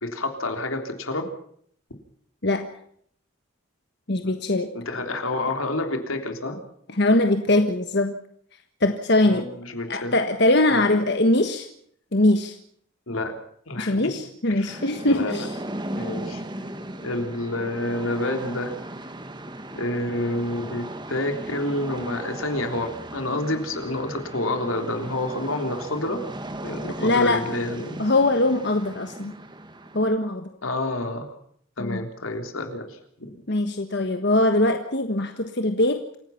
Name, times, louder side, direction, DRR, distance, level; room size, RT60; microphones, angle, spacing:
voice 1, 0.0-1.3 4.2-4.4 4.7-6.6 9.2-10.1 10.7-10.8 13.1-13.4 13.7-14.2 14.6-15.5 16.0-16.4 17.0-18.7 19.8-26.2 26.6-28.0 30.6-31.3 31.8-33.4, left 1 dB, 85° left, 5 dB, 3.6 m, -29 dB
voice 2, 4.1-4.7 6.9-8.2 8.8-9.5 9.9-11.7 12.1-12.6 13.8-15.6 26.9-27.5 28.0-29.3 29.9-30.5 31.8-32.0 33.5-36.0, left 2 dB, 55° left, 6 dB, 1.4 m, -22 dB
sound 1, 14.7-30.1, right 1 dB, 20° right, 1.5 m, -37 dB
27.5 x 16.5 x 5.9 m, 0.65 s
head